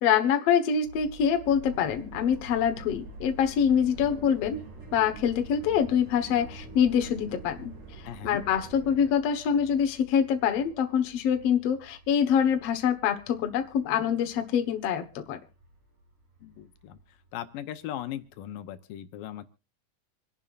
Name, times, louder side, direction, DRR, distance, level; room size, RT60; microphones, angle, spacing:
voice 1, 0.0-7.8 8.2-15.4, left 8 dB, 55° left, 6 dB, 2.0 m, -25 dB
sound 1, 0.8-18.4, right 1 dB, 50° right, 7.2 m, -51 dB
sound 2, 1.4-9.1, right 5 dB, 65° right, 3.5 m, -46 dB
voice 2, 8.1-8.4 16.4-17.0 17.3-19.5, left 11 dB, 80° left, 9 dB, 2.5 m, -38 dB
26.5 x 11.0 x 2.5 m, 0.30 s
omnidirectional pair, 4.0 m